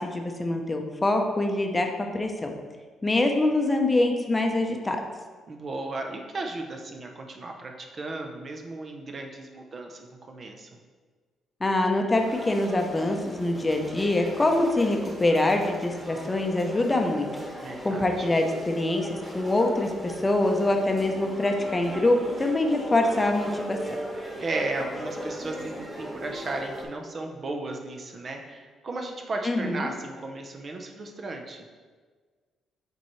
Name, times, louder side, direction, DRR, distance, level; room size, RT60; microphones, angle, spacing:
voice 1, 0.0-2.5 3.0-5.0 11.6-17.3 17.8-23.8 29.4-29.9, left 2 dB, 20° left, 3 dB, 0.7 m, -24 dB
voice 2, 5.5-10.7 17.6-18.3 24.4-31.6, right 2 dB, 45° right, 3 dB, 0.7 m, -35 dB
sound 1, 12.1-26.9, equal, 10° right, 1.7 m, -38 dB
6.9 x 4.5 x 3.1 m, 1.5 s
cardioid pair, 90°, 0 cm